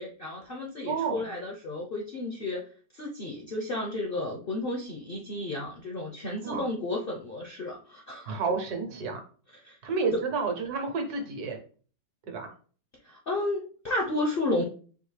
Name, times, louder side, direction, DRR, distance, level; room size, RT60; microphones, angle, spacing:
voice 1, 0.0-2.6 2.9-8.4 9.5-9.8 10.1-10.2 13.0-14.6, left 2 dB, 50° left, 0 dB, 0.6 m, -32 dB
voice 2, 0.8-1.3 6.4-6.7 8.3-9.2 9.8-11.6 12.3-12.5, right 4 dB, 65° right, 3 dB, 1.4 m, -30 dB
4.7 x 2.6 x 3.2 m, 0.40 s
omnidirectional pair, 1.8 m